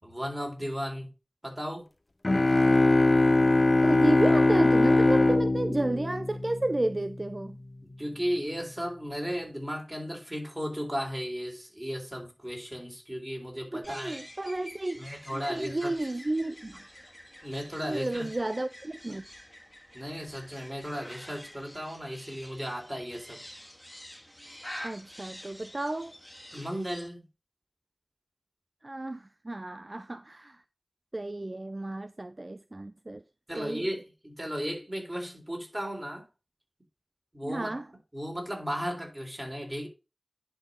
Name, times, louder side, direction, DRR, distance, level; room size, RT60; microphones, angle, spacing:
voice 1, 0.0-1.1 1.4-1.9 7.8-14.2 15.0-15.9 17.4-18.3 19.9-23.4 26.5-27.2 33.5-36.3 37.3-37.7 38.1-39.9, equal, 20° right, 3.9 m, -35 dB
sound 1, 2.2-6.9, left 2 dB, 45° left, 0.4 m, -22 dB
voice 2, 3.8-7.6 13.7-15.0 15.3-16.9 17.8-19.2 24.8-26.1 28.8-30.6 31.1-33.2 33.6-33.9 37.4-37.9, right 2 dB, 45° right, 0.4 m, -32 dB
sound 2, 13.8-27.1, equal, 5° left, 1.9 m, -47 dB
10.5 x 3.8 x 5.1 m
wide cardioid pair, 45°, 0 cm